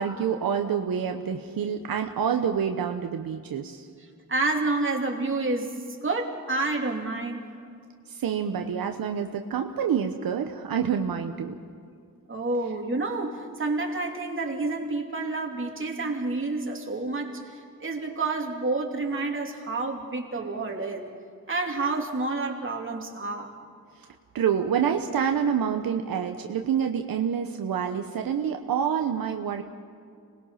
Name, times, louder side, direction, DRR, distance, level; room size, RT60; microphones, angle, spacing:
voice 1, 0.0-3.8 8.1-11.6 24.3-29.6, right 7 dB, 85° right, 5 dB, 1.0 m, -27 dB
voice 2, 4.3-7.5 12.3-17.5 17.8-21.0 21.5-23.5, right 3 dB, 35° right, 1 dB, 3.0 m, -29 dB
26.0 x 20.0 x 5.7 m, 2.3 s
cardioid pair, 80°, 35 cm